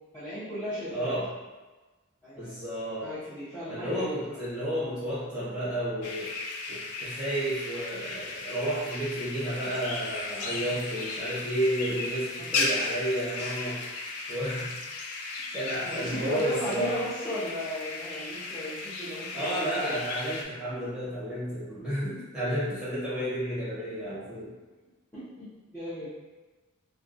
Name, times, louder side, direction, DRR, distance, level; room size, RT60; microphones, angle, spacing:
voice 1, 0.1-1.1 2.2-2.5 3.0-4.4 12.4-12.7 15.8-19.9 25.1-26.2, equal, 10° left, -16 dB, 0.6 m, -36 dB
voice 2, 0.9-1.3 2.4-3.1 3.7-6.3 6.7-13.8 14.3-14.7 15.3-16.9 19.3-24.5, right 1 dB, 5° right, -12 dB, 1.1 m, -32 dB
sound 1, 6.0-20.4, left 3 dB, 85° left, 0.3 m, -35 dB
2.5 x 2.2 x 2.6 m, 1.2 s
head